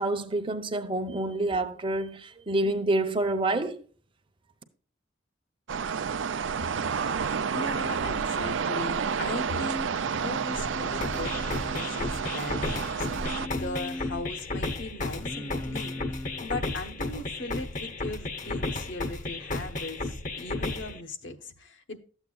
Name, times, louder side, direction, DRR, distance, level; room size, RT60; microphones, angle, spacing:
voice 1, 0.0-3.8, right 2 dB, 25° right, 0.8 m, -28 dB
sound 1, 5.7-13.5, right 6 dB, 70° right, 0.5 m, -30 dB
voice 2, 6.8-7.1 7.5-13.1 13.4-22.0, left 2 dB, 65° left, 1.0 m, -38 dB
Singing, 10.0-12.4 13.0-14.2 15.1-16.5 18.4-18.7, left 1 dB, 10° left, 0.4 m, -40 dB
sound 2, 11.0-21.0, left 2 dB, 40° left, 0.8 m, -33 dB
13.0 x 8.1 x 2.3 m
head